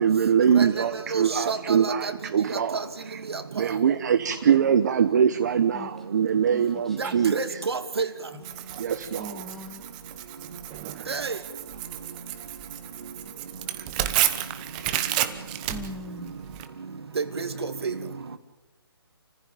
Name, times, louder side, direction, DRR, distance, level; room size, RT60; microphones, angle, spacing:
voice 1, 0.0-3.2 3.5-7.6 8.8-9.5 10.9-11.2 13.8-13.9, right 8 dB, 40° right, 9 dB, 1.1 m, -23 dB
voice 2, 1.1-2.1 2.7-2.9 3.3-3.4 7.0-8.1 11.1-11.4 17.1-18.0, right 4 dB, 75° right, 9 dB, 2.7 m, -29 dB
voice 3, 6.5-7.3 8.3-8.4 9.2-9.8 15.7-16.4, left 3 dB, ahead, 3 dB, 1.8 m, -41 dB
Tearing, 8.4-16.7, right 13 dB, 20° right, 1.1 m, -31 dB
29.0 x 15.5 x 9.0 m, 1.0 s
hypercardioid pair, 160°, 14 cm